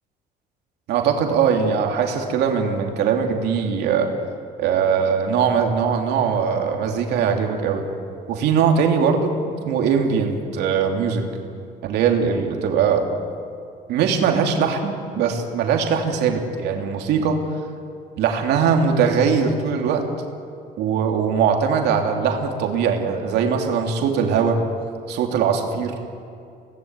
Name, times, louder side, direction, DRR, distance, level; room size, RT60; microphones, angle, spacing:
voice 1, 0.9-4.1 4.6-7.9 8.3-9.3 9.7-11.2 11.8-13.1 13.9-17.4 18.2-20.1 20.8-24.6 25.1-25.9, right 6 dB, 80° right, 3 dB, 3.0 m, -21 dB
24.0 x 19.0 x 9.3 m, 2.5 s
cardioid pair, 110°, 17 cm